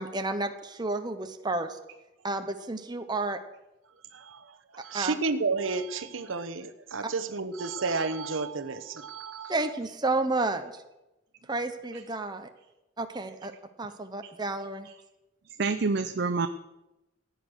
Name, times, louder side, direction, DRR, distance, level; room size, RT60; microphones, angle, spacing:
voice 1, 0.0-1.8 2.2-3.4 4.9-5.1 9.5-10.7 11.5-12.5 13.0-13.5 13.8-14.9, right 2 dB, 20° right, 7 dB, 0.9 m, -31 dB
voice 2, 4.1-9.5, right 4 dB, 80° right, 10 dB, 1.0 m, -32 dB
voice 3, 15.6-16.5, right 4 dB, 55° right, 9 dB, 0.6 m, -27 dB
15.5 x 9.2 x 6.4 m, 0.97 s
head